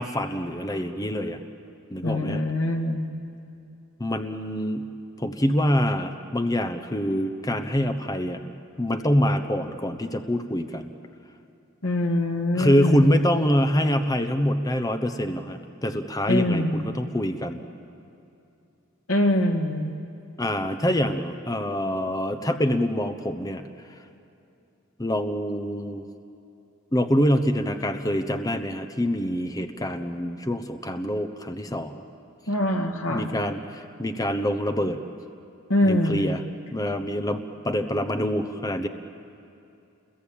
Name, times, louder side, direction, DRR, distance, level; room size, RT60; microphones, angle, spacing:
voice 1, 0.0-1.4 1.9-2.4 4.0-4.8 5.2-10.9 12.5-17.6 20.4-23.6 25.0-26.1 26.9-32.0 33.1-35.0 35.8-36.4 36.7-38.9, equal, 15° left, 7 dB, 0.9 m, -25 dB
voice 2, 2.0-3.1 11.8-13.2 16.3-16.8 19.1-20.0 32.5-33.3 35.7-36.3, left 1 dB, 85° left, 3 dB, 2.2 m, -24 dB
29.0 x 22.0 x 8.7 m, 2.7 s
head